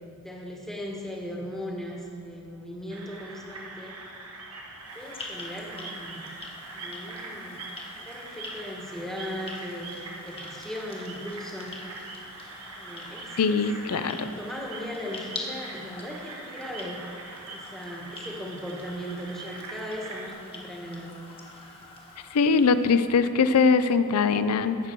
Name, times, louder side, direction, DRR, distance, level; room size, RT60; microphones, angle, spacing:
voice 1, 0.2-4.0 4.9-6.3 6.7-11.8 12.8-17.1 17.5-21.2, equal, ahead, -1 dB, 1.2 m, -38 dB
sound 1, 2.9-20.3, right 3 dB, 85° right, 1.2 m, -43 dB
sound 2, 4.8-23.2, left 2 dB, 25° left, 1.1 m, -45 dB
voice 2, 13.4-14.3 22.3-24.8, left 5 dB, 85° left, 12 dB, 0.5 m, -22 dB
15.0 x 5.9 x 4.5 m, 2.6 s
head